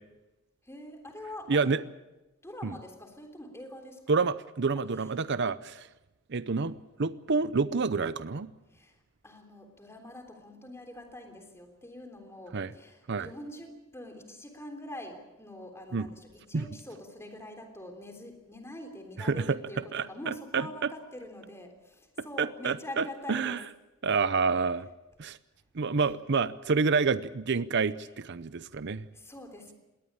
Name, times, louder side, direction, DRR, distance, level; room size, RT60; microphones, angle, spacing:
voice 1, 0.6-1.8 2.4-4.1 5.0-5.1 8.7-9.0 9.2-23.6 29.1-29.7, left 1 dB, 15° left, 4 dB, 3.4 m, -44 dB
voice 2, 1.5-1.8 2.6-2.7 4.1-5.9 6.3-8.5 12.5-12.7 13.1-13.3 15.9-16.1 16.5-16.6 19.2-19.6 19.9-20.7 22.4-23.6 24.0-24.9 25.2-25.4 25.7-29.1, right 4 dB, 55° right, 15 dB, 0.7 m, -28 dB
21.0 x 18.0 x 8.7 m, 1.0 s
head